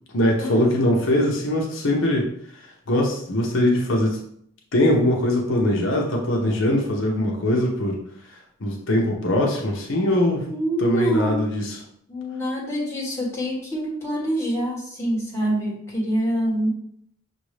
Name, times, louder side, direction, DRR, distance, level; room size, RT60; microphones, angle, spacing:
voice 1, 0.1-2.3 2.9-4.2 4.7-8.0 8.3-10.5 10.8-11.8, left 1 dB, 65° left, -1 dB, 0.8 m, -21 dB
voice 2, 10.5-11.5 12.1-16.7, equal, 15° left, -5 dB, 1.2 m, -25 dB
6.1 x 2.6 x 3.2 m, 0.69 s
head